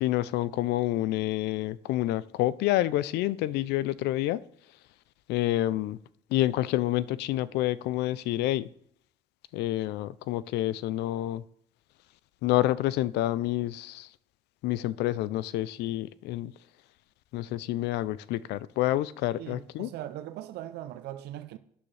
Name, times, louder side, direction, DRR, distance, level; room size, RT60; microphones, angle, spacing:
voice 1, 0.0-4.4 5.3-6.0 6.3-8.6 9.5-11.4 12.4-14.1 14.6-16.5 17.3-19.9, left 15 dB, 85° left, 0.5 m, -28 dB
voice 2, 19.4-21.6, right 13 dB, 75° right, 0.6 m, -40 dB
11.5 x 9.7 x 3.3 m
cardioid pair, 110°, 17 cm